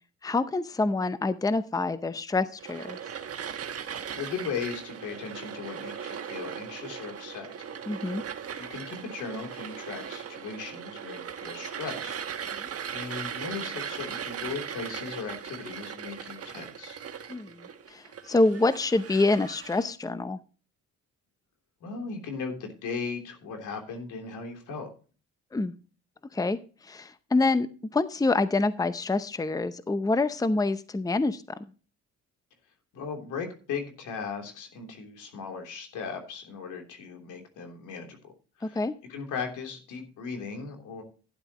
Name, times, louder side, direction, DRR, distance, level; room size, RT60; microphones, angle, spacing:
voice 1, 0.2-3.0 7.9-8.2 12.6-12.7 17.3-20.4 25.5-25.7 26.3-26.6 26.8-27.7 27.9-31.4 38.6-38.9, left 3 dB, 10° left, 13 dB, 0.7 m, -26 dB
sound 1, 2.6-19.9, right 7 dB, 50° right, 1.4 m, -38 dB
voice 2, 4.1-7.5 8.6-12.2 12.9-17.0 21.8-24.9 32.9-38.3 38.6-38.8 39.1-41.0, left 5 dB, 85° left, 3 dB, 3.3 m, -37 dB
12.0 x 10.5 x 3.0 m, 0.36 s
cardioid pair, 90°, 30 cm